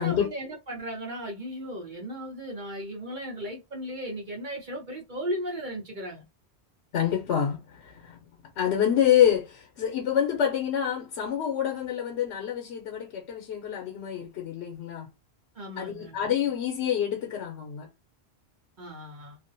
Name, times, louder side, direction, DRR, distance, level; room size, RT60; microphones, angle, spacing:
voice 1, 0.0-6.2 15.5-16.2 18.8-19.4, equal, 50° right, 0.8 m, -36 dB
voice 2, 6.9-8.2 8.6-15.1 15.8-17.9, left 9 dB, 85° left, 0.9 m, -27 dB
2.4 x 2.1 x 2.6 m
omnidirectional pair, 1.1 m